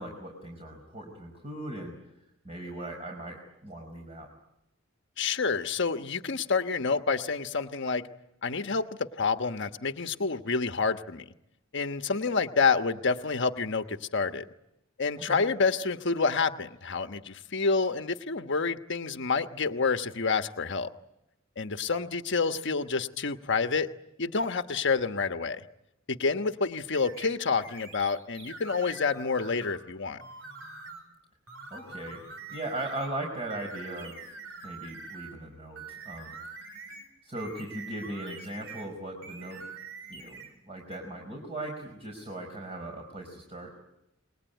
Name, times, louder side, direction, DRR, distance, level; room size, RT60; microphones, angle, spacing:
voice 1, 0.0-1.9 2.4-4.3 15.2-15.4 31.7-34.2 34.6-36.4 37.2-39.7 40.1-43.7, right 1 dB, 30° right, 2 dB, 5.0 m, -38 dB
voice 2, 5.2-8.1 8.4-11.2 11.7-14.5 15.0-20.9 21.6-23.9 24.2-25.6 26.1-30.2, left 4 dB, 60° left, 8 dB, 1.2 m, -28 dB
sound 1, 26.9-29.8 30.2-31.1 31.5-33.1 33.5-35.4 35.8-38.9 39.2-40.6 40.9-41.0, right 4 dB, 70° right, 4.5 m, -45 dB
28.5 x 21.0 x 9.2 m, 0.87 s
head